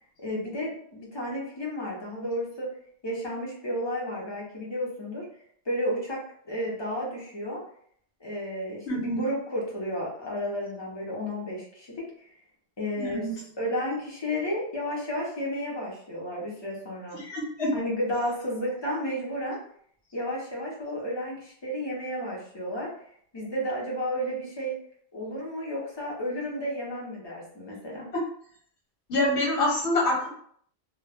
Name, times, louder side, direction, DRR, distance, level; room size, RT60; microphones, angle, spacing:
voice 1, 0.2-2.7 3.0-5.3 5.6-6.2 6.4-7.6 8.2-12.0 12.8-13.3 13.6-17.2 17.7-19.6 20.1-22.9 23.3-24.7 25.1-28.1, equal, 25° left, -4 dB, 0.7 m, -32 dB
voice 2, 8.9-9.2 13.0-13.3 17.1-17.7 29.1-30.3, left 1 dB, 75° left, -3 dB, 1.2 m, -26 dB
2.2 x 2.2 x 3.4 m, 0.63 s
omnidirectional pair, 1.1 m